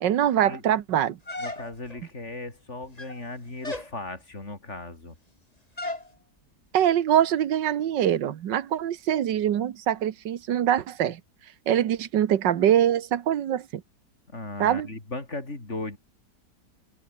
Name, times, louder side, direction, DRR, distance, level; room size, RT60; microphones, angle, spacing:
voice 1, 0.0-1.2 6.7-11.2 11.7-13.8 14.6-14.9, right 10 dB, 85° right, 1.8 m, -23 dB
sound 1, 1.3-2.0 2.8-3.3 3.6-3.9 5.8-6.1, left 2 dB, 20° left, 3.2 m, -35 dB
voice 2, 1.4-5.1 14.3-16.0, left 2 dB, 40° left, 5.2 m, -37 dB
open air
omnidirectional pair, 1.9 m